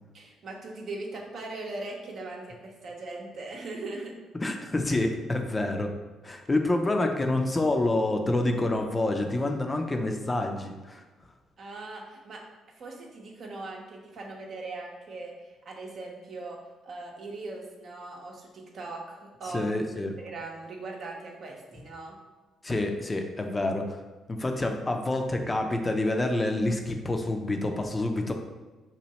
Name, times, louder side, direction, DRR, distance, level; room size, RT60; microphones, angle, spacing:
voice 1, 0.1-4.2 11.6-12.4 12.8-16.6 16.8-19.6 19.9-22.2, right 2 dB, 60° right, 0 dB, 0.7 m, -40 dB
voice 2, 4.3-5.9 6.2-11.0 19.4-20.1 22.6-24.0 24.3-28.3, left 2 dB, 25° left, 4 dB, 0.5 m, -27 dB
2.9 x 2.7 x 4.1 m, 1.2 s
hypercardioid pair, 50°, 0 cm